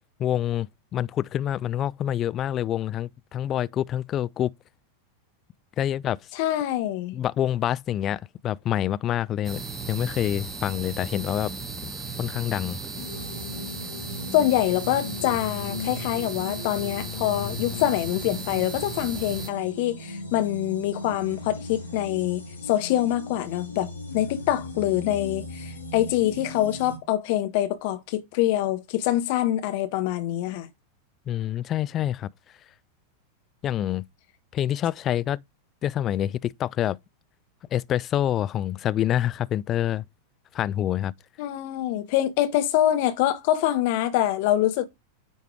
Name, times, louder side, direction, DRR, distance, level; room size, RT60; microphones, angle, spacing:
voice 1, 0.2-4.5 5.8-6.2 7.1-9.6 9.9-11.5 11.8-11.9 12.2-12.8 31.3-32.3 33.6-34.0 34.5-35.4 35.8-37.0 37.7-40.0 40.5-41.1, left 11 dB, 30° left, 0.4 m, -26 dB
voice 2, 6.3-7.2 14.3-30.7 41.4-44.9, left 13 dB, 50° left, 1.5 m, -25 dB
sound 1, 9.4-19.5, right 4 dB, 15° right, 1.6 m, -36 dB
sound 2, 13.0-27.0, left 3 dB, 75° left, 2.3 m, -37 dB
9.8 x 4.6 x 4.7 m
figure-of-eight pair, 90°, 0 cm